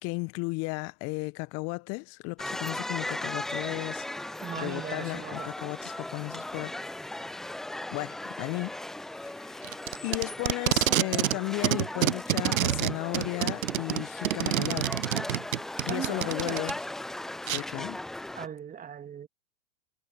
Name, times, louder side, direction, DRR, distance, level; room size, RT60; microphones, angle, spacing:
voice 1, 0.0-6.7 7.9-8.7 9.2-9.8 10.0-14.9 15.9-16.7 17.4-18.0, left 30 dB, 35° left, 1.0 m, -35 dB
sound 1, 2.4-18.5, left 1 dB, ahead, 0.3 m, -38 dB
voice 2, 4.4-5.5 15.8-16.7 18.3-19.3, right 8 dB, 20° right, 2.1 m, -38 dB
Packing tape duct tape, 9.6-11.4 11.6-16.7 17.5-17.6, right 12 dB, 75° right, 0.6 m, -27 dB
figure-of-eight pair, 100°, 41 cm